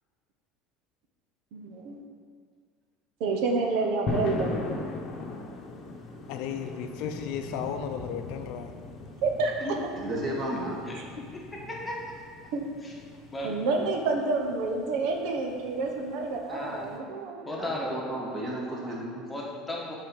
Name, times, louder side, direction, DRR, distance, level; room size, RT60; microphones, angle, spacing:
voice 1, 1.5-2.0 3.2-4.5 9.2-9.8 12.5-12.7 13.4-17.4, right 3 dB, 65° right, 2 dB, 1.0 m, -28 dB
sound 1, 4.1-17.0, left 3 dB, 30° left, 1.1 m, -39 dB
voice 2, 6.3-8.7, left 8 dB, 65° left, 7 dB, 0.6 m, -35 dB
voice 3, 9.9-10.8 17.4-19.3, right 1 dB, 25° right, -3 dB, 1.8 m, -33 dB
voice 4, 11.7-12.2 12.8-12.9 13.3-13.6 16.5-16.9 17.5-18.0 19.3-20.0, left 1 dB, 10° left, -3 dB, 1.3 m, -35 dB
8.4 x 4.3 x 6.4 m, 2.1 s
cardioid pair, 155°, 0 cm